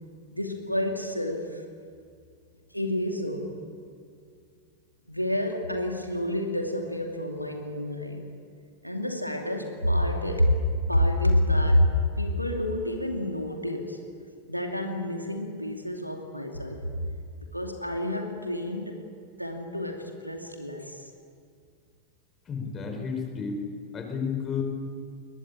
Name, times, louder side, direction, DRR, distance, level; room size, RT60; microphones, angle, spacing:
voice 1, 0.3-1.6 2.7-3.5 5.1-8.3 8.8-10.6 10.9-14.0 14.5-17.0 17.4-19.0 19.4-21.1, left 1 dB, 90° left, 3 dB, 2.5 m, -28 dB
voice 2, 22.5-23.6 23.9-24.6, left 6 dB, 25° left, 4 dB, 5.0 m, -31 dB
21.5 x 21.5 x 8.9 m, 2.2 s
figure-of-eight pair, 90°, 0 cm